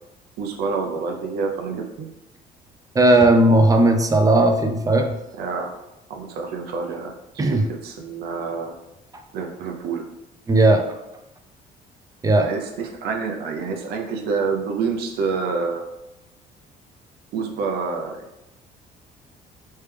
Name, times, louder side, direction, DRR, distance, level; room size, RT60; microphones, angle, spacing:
voice 1, 0.4-2.1 5.4-5.8 6.1-8.8 9.3-10.1 12.4-15.8 17.3-18.2, right 5 dB, 70° right, 2 dB, 0.5 m, -27 dB
voice 2, 2.9-5.2 7.4-7.6 9.1-9.2 10.5-10.9 12.2-12.5, right 2 dB, 20° right, 5 dB, 0.4 m, -16 dB
3.3 x 3.2 x 3.3 m, 0.91 s
cardioid pair, 110°, 17 cm